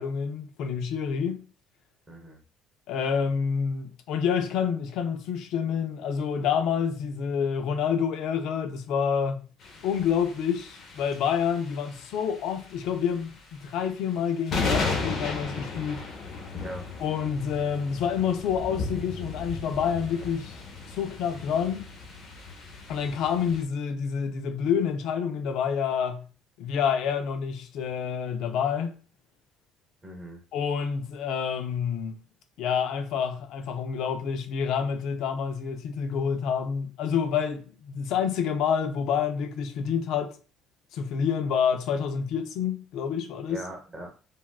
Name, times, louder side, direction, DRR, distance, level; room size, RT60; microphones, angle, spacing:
voice 1, 0.0-1.4 2.9-9.4 9.8-16.0 17.0-20.6 20.9-21.9 22.9-26.2 26.6-28.9 30.5-32.1 32.6-40.4 40.9-43.6, left 7 dB, 75° left, 0.4 m, -28 dB
voice 2, 2.1-2.4 16.6-16.9 30.0-30.4 43.5-44.1, right 1 dB, 25° right, 1.0 m, -40 dB
sound 1, 9.6-23.6, left 4 dB, 55° left, 0.8 m, -35 dB
3.4 x 2.2 x 2.3 m
cardioid pair, 115°, 0 cm